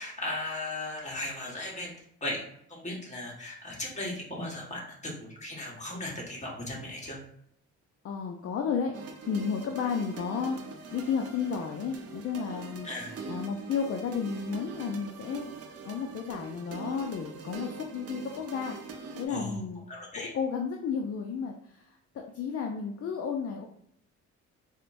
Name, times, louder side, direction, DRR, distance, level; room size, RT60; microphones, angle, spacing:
voice 1, 0.0-1.9 2.2-2.4 2.7-7.2 12.8-13.1 19.3-19.6 19.9-20.3, left 2 dB, 25° left, -3 dB, 1.3 m, -37 dB
voice 2, 8.0-9.0 9.2-10.6 10.9-12.9 13.3-18.8 19.2-19.9 20.2-21.8 22.1-23.6, left 6 dB, 50° left, 2 dB, 0.5 m, -32 dB
sound 1, 8.9-19.3, right 4 dB, 50° right, 0.6 m, -43 dB
4.3 x 2.1 x 2.5 m, 0.69 s
cardioid pair, 90°, 30 cm